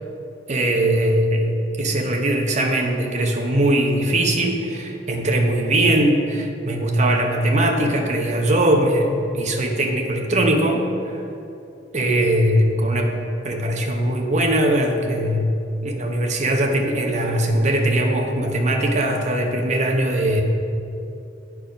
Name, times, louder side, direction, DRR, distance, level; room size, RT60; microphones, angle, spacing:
voice 1, 0.5-10.8 11.1-11.2 11.9-13.1 13.4-15.5 15.8-20.4, right 1 dB, 40° right, 2 dB, 0.9 m, -20 dB
10.0 x 4.7 x 5.1 m, 2.8 s
head